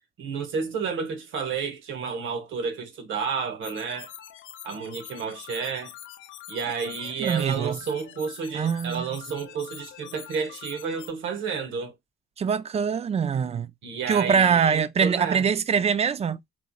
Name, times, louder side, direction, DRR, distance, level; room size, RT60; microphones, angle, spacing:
voice 1, 0.2-4.1 4.6-5.9 6.5-11.9 13.8-15.5, right 5 dB, 80° right, 0.9 m, -31 dB
sound 1, 3.6-11.1, left 11 dB, 80° left, 0.5 m, -45 dB
voice 2, 7.2-7.8 8.5-9.1 12.4-13.7 14.1-16.4, right 6 dB, 30° right, 0.3 m, -23 dB
3.1 x 2.0 x 3.7 m
cardioid pair, 90°, 20 cm